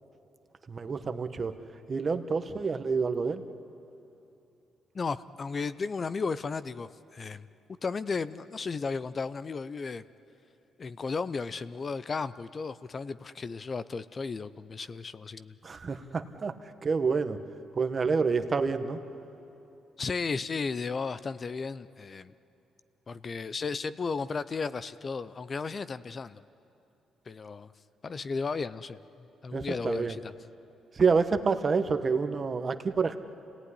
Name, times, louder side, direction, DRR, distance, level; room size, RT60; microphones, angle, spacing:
voice 1, 0.7-1.5 1.9-3.4 15.6-16.5 16.8-17.4 17.8-19.0 29.5-30.2 30.9-33.2, right 5 dB, 35° right, 9 dB, 1.2 m, -28 dB
voice 2, 4.9-7.5 7.8-10.0 10.8-15.6 20.0-22.3 23.1-26.4 27.3-27.7 28.0-29.0 29.4-30.3, left 4 dB, 40° left, 14 dB, 0.6 m, -34 dB
27.0 x 18.0 x 9.9 m, 2.8 s
cardioid pair, 90°, 0 cm